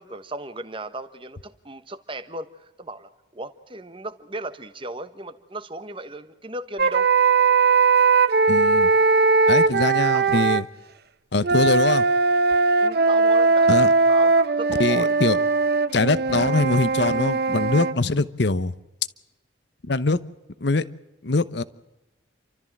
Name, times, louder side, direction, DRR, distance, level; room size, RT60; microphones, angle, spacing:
voice 1, 0.0-7.1 10.1-10.5 12.8-15.1, right 2 dB, 25° right, 11 dB, 1.2 m, -36 dB
sound 1, 6.8-10.6 11.4-17.9, right 4 dB, 50° right, 0.8 m, -19 dB
voice 2, 8.5-8.9 9.5-10.6 11.3-12.1 13.7-13.9 14.8-15.4 15.9-18.7 19.9-20.2 20.6-20.8 21.2-21.6, left 3 dB, 60° left, 15 dB, 0.9 m, -22 dB
30.0 x 13.5 x 7.4 m, 1.0 s
head